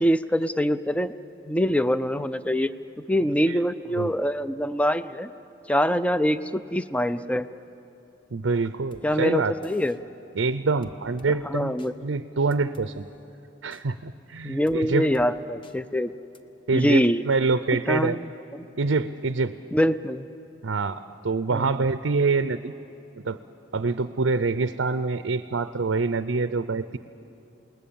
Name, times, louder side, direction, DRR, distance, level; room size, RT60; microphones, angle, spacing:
voice 1, 0.0-1.1 1.4-2.7 3.1-5.3 5.7-7.5 9.0-10.0 11.3-11.9 14.4-16.1 16.7-17.2 17.9-18.7 19.7-20.3 21.5-21.7, equal, 5° left, 13 dB, 0.4 m, -24 dB
voice 2, 8.3-9.5 10.4-11.7 12.0-13.1 13.6-15.1 16.7-18.2 18.8-19.5 20.6-22.7 23.2-23.4 23.7-27.0, right 4 dB, 90° right, 11 dB, 0.6 m, -25 dB
sound 1, 8.9-9.1 9.6-10.0 10.8-11.3 11.8-11.9 12.5-12.9 13.7-13.8 14.7-14.8 15.1-15.3 15.6-15.8 16.3-16.4, left 1 dB, 25° left, 0.8 m, -50 dB
28.0 x 20.0 x 7.1 m, 2.8 s
head